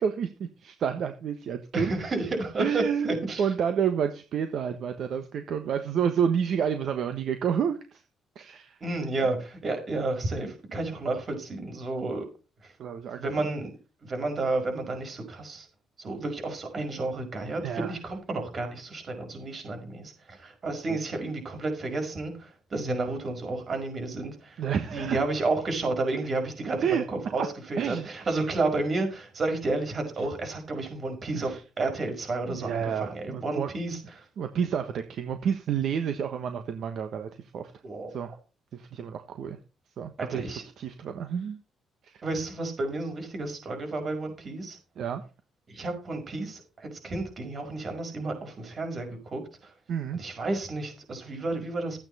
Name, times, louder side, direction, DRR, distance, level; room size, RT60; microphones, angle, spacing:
voice 1, 0.0-1.9 2.6-8.0 8.3-8.8 12.8-13.5 17.6-17.9 20.9-21.0 24.6-25.2 26.8-27.0 27.8-28.4 31.3-31.6 32.5-33.7 34.4-37.7 38.1-38.4 38.7-39.6 40.0-40.5 40.8-41.6 42.0-42.2 45.0-45.2 49.9-50.2, right 7 dB, 65° right, 8 dB, 1.2 m, -29 dB
voice 2, 1.7-3.5 8.8-12.2 12.6-12.7 13.2-13.7 14.0-15.7 16.0-24.6 24.9-34.0 37.8-38.1 40.2-40.6 42.2-44.8 45.7-49.7 50.1-52.0, right 2 dB, 45° right, 4 dB, 5.5 m, -31 dB
13.0 x 8.8 x 4.2 m, 0.33 s
cardioid pair, 90°, 0 cm